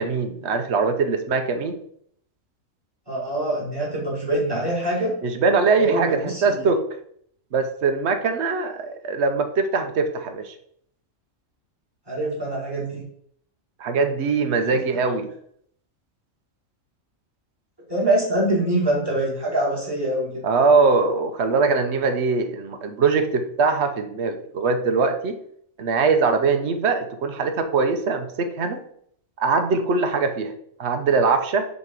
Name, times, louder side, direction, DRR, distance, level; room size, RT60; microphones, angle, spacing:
voice 1, 0.0-1.8 5.2-6.9 7.5-10.5 13.8-15.3 20.4-25.4 25.8-28.8 29.4-30.5 30.8-31.7, right 4 dB, 60° right, 7 dB, 1.0 m, -22 dB
voice 2, 3.1-5.1 5.8-6.6 12.1-13.0 14.7-14.8 17.9-20.4, right 1 dB, 15° right, -4 dB, 2.0 m, -24 dB
6.6 x 3.0 x 5.2 m, 0.66 s
omnidirectional pair, 1.4 m